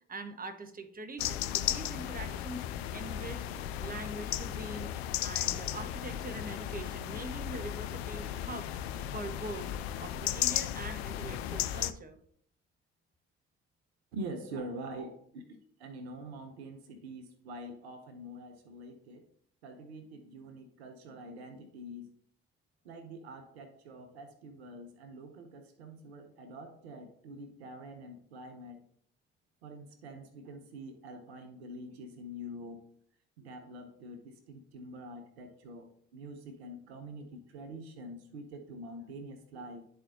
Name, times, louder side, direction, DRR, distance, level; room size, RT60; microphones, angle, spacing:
voice 1, 0.1-2.7 2.9-3.4 3.8-4.9 5.2-8.8 9.1-9.7 10.0-12.2 14.6-14.7, right 2 dB, 30° right, 7 dB, 1.2 m, -43 dB
sound 1, 1.2-11.9, left 11 dB, 80° left, 0.5 m, -35 dB
voice 2, 14.1-19.3 19.6-22.1 22.8-28.8 29.6-32.9 33.4-39.8, right 1 dB, 80° right, 7 dB, 0.7 m, -45 dB
11.5 x 4.2 x 2.7 m, 0.64 s
hypercardioid pair, 50°, 31 cm